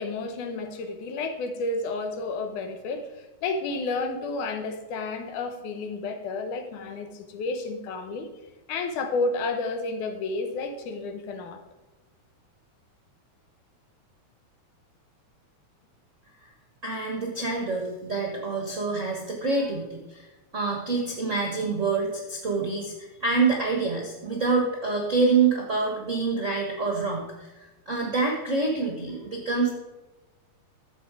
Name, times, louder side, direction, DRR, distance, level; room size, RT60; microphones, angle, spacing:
voice 1, 0.0-8.3 8.7-11.6, left 3 dB, 80° left, 6 dB, 2.5 m, -31 dB
voice 2, 16.8-20.3 20.5-29.7, right 4 dB, 50° right, 0 dB, 0.9 m, -26 dB
12.5 x 7.4 x 4.8 m, 1.1 s
omnidirectional pair, 3.5 m